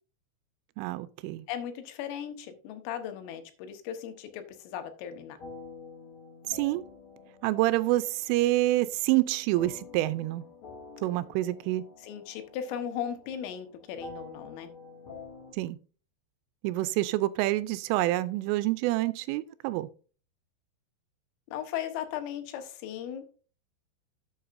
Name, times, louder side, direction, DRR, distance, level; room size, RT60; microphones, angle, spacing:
voice 1, 0.8-1.5 6.5-6.8 7.4-10.4 11.0-11.9 15.6-15.8 16.6-19.9, right 17 dB, 85° right, 3.0 m, -27 dB
voice 2, 1.5-5.4 12.0-14.7 21.5-23.3, left 9 dB, 85° left, 3.8 m, -37 dB
sound 1, 5.4-15.5, left 3 dB, 50° left, 1.7 m, -48 dB
12.5 x 8.0 x 2.6 m
omnidirectional pair, 5.7 m